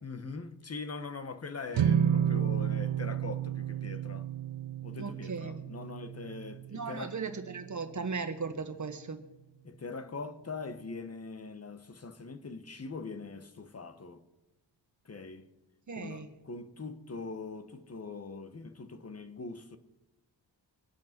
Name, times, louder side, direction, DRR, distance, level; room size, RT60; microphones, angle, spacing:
voice 1, 0.0-4.3 4.8-7.2 9.6-14.2 15.0-15.5 16.0-19.8, left 4 dB, 35° left, 1.3 m, -42 dB
sound 1, 1.7-8.2, right 9 dB, 80° right, 0.8 m, -32 dB
voice 2, 5.0-5.6 6.7-9.2 15.9-16.3, right 4 dB, 40° right, 1.6 m, -37 dB
24.0 x 8.6 x 6.1 m
wide cardioid pair, 105°, 44 cm